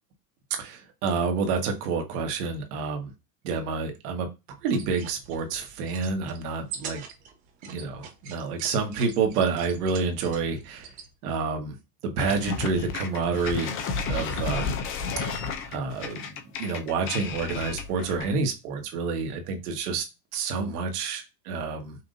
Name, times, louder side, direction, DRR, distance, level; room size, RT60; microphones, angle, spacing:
voice 1, 0.6-3.1 3.4-4.3 4.6-7.0 7.7-10.8 11.2-11.7 12.0-13.7 14.0-14.7 15.2-20.0 20.3-22.0, right 4 dB, 65° right, 1.5 m, -28 dB
sound 1, 4.6-11.1, right 7 dB, 20° right, 0.3 m, -44 dB
sound 2, 12.2-18.4, left 5 dB, 25° left, 0.6 m, -32 dB
5.8 x 2.6 x 2.6 m
supercardioid pair, 140°, 49 cm